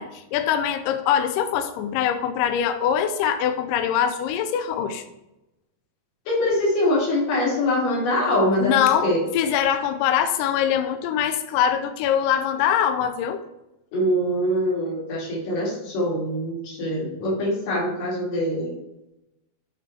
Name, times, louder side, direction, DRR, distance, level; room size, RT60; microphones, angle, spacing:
voice 1, 0.0-5.0 8.6-13.4, left 9 dB, 85° left, 8 dB, 1.9 m, -23 dB
voice 2, 6.3-9.2 13.9-18.7, left 1 dB, 60° left, -5 dB, 4.0 m, -23 dB
8.5 x 4.3 x 4.5 m, 0.92 s
omnidirectional pair, 4.5 m